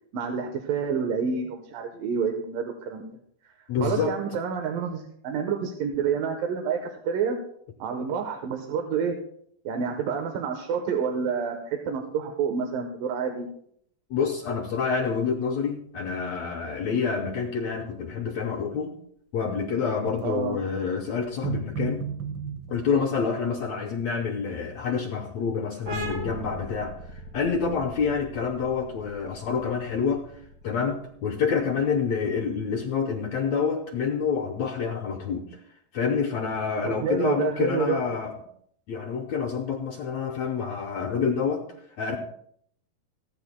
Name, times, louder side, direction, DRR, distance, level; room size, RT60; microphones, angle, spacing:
voice 1, 0.1-3.1 3.4-3.5 3.8-7.4 7.8-9.2 9.7-13.5 20.2-20.6 36.9-38.0, right 6 dB, 85° right, 4 dB, 2.8 m, -28 dB
voice 2, 3.7-4.1 14.1-19.0 19.3-22.0 22.7-30.3 30.6-35.6 35.9-38.3 38.9-41.6 42.0-42.2, left 6 dB, 65° left, 2 dB, 1.9 m, -27 dB
sound 1, 14.7-14.8 15.1-15.2 20.0-20.5 21.3-22.9, right 8 dB, 70° right, 1.1 m, -33 dB
sound 2, 25.9-33.2, equal, 40° right, 2.2 m, -40 dB
29.0 x 9.9 x 2.2 m, 0.67 s
omnidirectional pair, 3.9 m